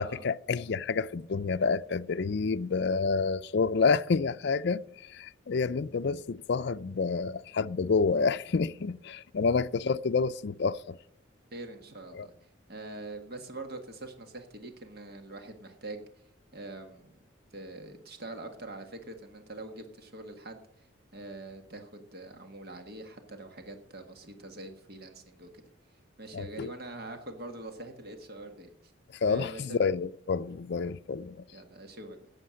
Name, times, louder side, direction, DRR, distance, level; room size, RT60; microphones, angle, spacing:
voice 1, 0.0-11.0 12.1-12.3 26.3-26.7 29.2-31.4, left 4 dB, 55° left, 0.4 m, -29 dB
voice 2, 11.5-16.0 16.5-17.2 17.5-20.9 21.1-25.6 26.2-28.9 29.2-29.8 31.5-32.3, right 2 dB, 50° right, 1.6 m, -44 dB
13.5 x 8.9 x 6.3 m
head